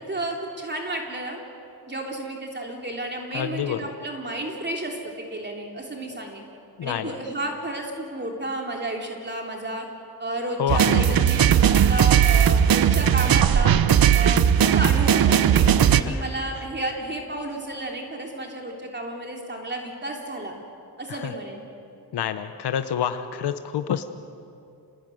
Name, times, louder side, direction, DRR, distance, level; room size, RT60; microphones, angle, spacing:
voice 1, 0.0-1.4 1.9-6.5 6.8-9.9 10.2-13.8 14.1-15.7 16.0-20.5 21.0-21.7, right 1 dB, 25° right, 1 dB, 3.3 m, -32 dB
voice 2, 3.3-3.9 6.8-7.1 10.6-11.2 15.9-16.2 21.1-21.3 22.1-24.0, left 9 dB, 85° left, 9 dB, 1.0 m, -28 dB
sound 1, 10.7-16.0, right 9 dB, 65° right, 0.9 m, -18 dB
27.5 x 20.0 x 9.2 m, 2.7 s
cardioid pair, 100°, 39 cm